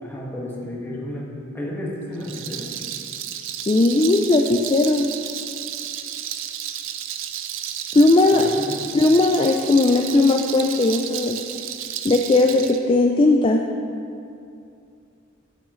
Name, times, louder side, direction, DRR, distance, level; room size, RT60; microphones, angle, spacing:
voice 1, 0.0-1.3 1.5-2.7 8.3-8.8, left 1 dB, 10° left, -5 dB, 1.7 m, -32 dB
Rattle, 2.1-12.8, right 10 dB, 75° right, 0.5 m, -32 dB
voice 2, 3.7-5.1 7.9-8.5 8.9-11.4 12.0-13.6, left 2 dB, 25° left, 3 dB, 0.4 m, -17 dB
11.0 x 8.7 x 3.1 m, 2.5 s
head